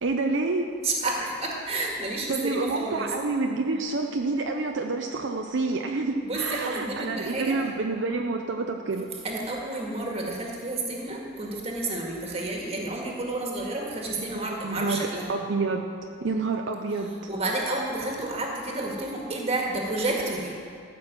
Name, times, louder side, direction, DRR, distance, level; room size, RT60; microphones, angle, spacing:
voice 1, 0.0-0.7 2.3-9.1 14.1-15.9 16.2-17.1, right 3 dB, 70° right, 3 dB, 0.6 m, -28 dB
voice 2, 0.8-3.1 6.2-7.6 9.2-15.3 17.3-20.5, right 2 dB, 30° right, -1 dB, 2.0 m, -30 dB
14.0 x 6.2 x 7.6 m, 2.3 s
head